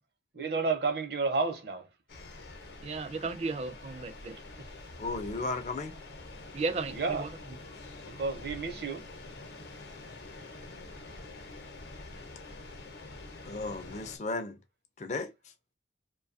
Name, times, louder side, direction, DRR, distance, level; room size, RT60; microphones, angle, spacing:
voice 1, 0.3-1.9 6.9-7.3 8.0-9.1, right 4 dB, 60° right, 0.7 m, -31 dB
sound 1, 2.1-14.2, left 2 dB, 65° left, 0.7 m, -46 dB
voice 2, 2.8-4.4 6.5-7.3, right 3 dB, 35° right, 0.3 m, -34 dB
voice 3, 5.0-5.9 13.4-14.6 15.0-15.3, left 3 dB, 40° left, 0.4 m, -34 dB
2.6 x 2.2 x 2.5 m
head